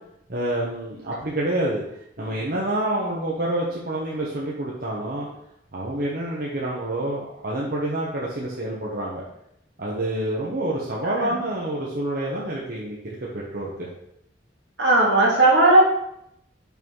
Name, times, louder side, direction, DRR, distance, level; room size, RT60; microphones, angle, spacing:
voice 1, 0.3-1.8 2.2-5.3 5.7-9.2 9.8-13.0 13.3-13.9, right 1 dB, 55° right, -5 dB, 1.2 m, -27 dB
voice 2, 14.8-15.8, right 2 dB, 70° right, -3 dB, 2.1 m, -16 dB
5.9 x 5.6 x 4.6 m, 0.78 s
head